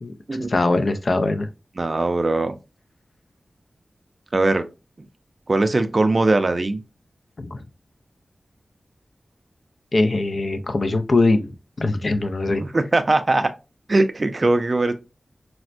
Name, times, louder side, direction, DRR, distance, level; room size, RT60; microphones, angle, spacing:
voice 1, 0.5-1.5 7.4-7.6 9.9-11.5 11.8-12.6, left 2 dB, 60° left, 0.4 m, -21 dB
voice 2, 1.8-2.6 4.3-4.6 5.5-6.8 12.5-13.5 13.9-14.9, right 2 dB, 45° right, 0.4 m, -20 dB
4.2 x 2.1 x 2.4 m
wide cardioid pair, 85°, 0 cm